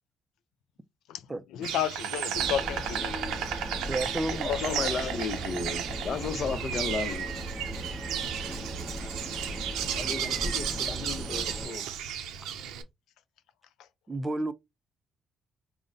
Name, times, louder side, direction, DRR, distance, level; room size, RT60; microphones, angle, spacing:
voice 1, 1.5-3.5 4.5-4.9, left 9 dB, 90° left, 0.3 m, -32 dB
Insect, 1.6-12.8, right 9 dB, 90° right, 0.5 m, -34 dB
sound 1, 2.3-11.7, equal, 10° left, 0.8 m, -38 dB
voice 2, 3.9-4.5 14.1-14.5, right 2 dB, 20° right, 0.4 m, -31 dB
voice 3, 4.4-7.4 9.9-11.9, left 5 dB, 50° left, 0.7 m, -34 dB
3.7 x 2.1 x 3.8 m
cardioid pair, 90°, 0 cm